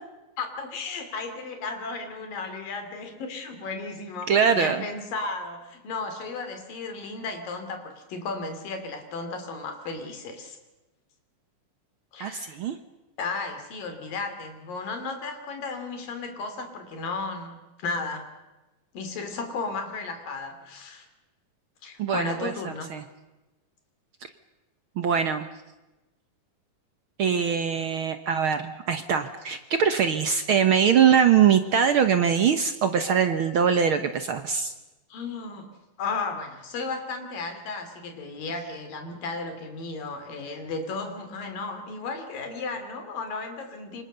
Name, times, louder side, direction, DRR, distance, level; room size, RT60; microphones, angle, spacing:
voice 1, 0.4-10.6 12.1-12.6 13.2-18.3 18.9-21.1 21.8-22.9 35.1-35.7 36.0-44.0, left 3 dB, 80° left, 7 dB, 4.8 m, -34 dB
voice 2, 4.3-4.8 12.2-12.8 22.0-22.5 22.9-23.0 25.0-25.5 27.2-34.7, right 7 dB, 70° right, 8 dB, 1.2 m, -22 dB
27.0 x 25.0 x 6.8 m, 1.1 s
omnidirectional pair, 3.9 m